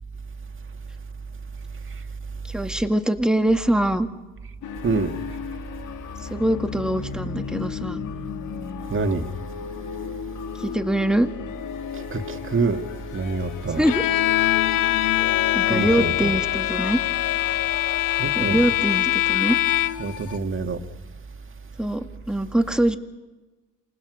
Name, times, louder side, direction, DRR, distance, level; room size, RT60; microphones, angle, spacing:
voice 1, 2.4-4.1 6.2-8.0 10.5-11.3 13.8-14.0 15.5-17.0 17.5-17.6 18.3-19.6 21.8-23.0, right 1 dB, ahead, 2.0 m, -23 dB
sound 1, 4.6-20.4, left 8 dB, 70° left, 1.6 m, -34 dB
voice 2, 8.9-9.3 12.1-12.8 13.1-13.9 15.7-16.4 18.2-18.6 20.0-20.8, right 4 dB, 40° right, 2.1 m, -26 dB
Bowed string instrument, 13.9-20.2, left 15 dB, 85° left, 1.0 m, -23 dB
27.5 x 19.5 x 6.5 m
supercardioid pair, 70°, 32 cm